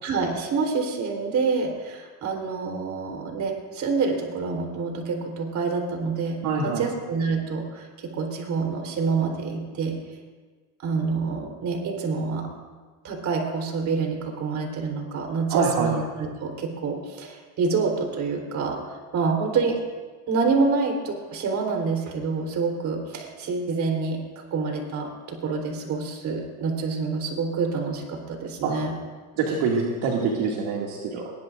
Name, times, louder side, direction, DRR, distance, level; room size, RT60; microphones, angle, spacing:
voice 1, 0.0-10.0 10.8-12.5 13.0-19.8 20.3-24.2 24.5-28.9, right 4 dB, 40° right, 2 dB, 3.9 m, -27 dB
voice 2, 6.4-6.9 15.5-15.9 28.6-28.8 29.4-31.3, right 5 dB, 60° right, -2 dB, 2.4 m, -25 dB
22.5 x 19.5 x 2.6 m, 1.4 s
supercardioid pair, 120°, 43 cm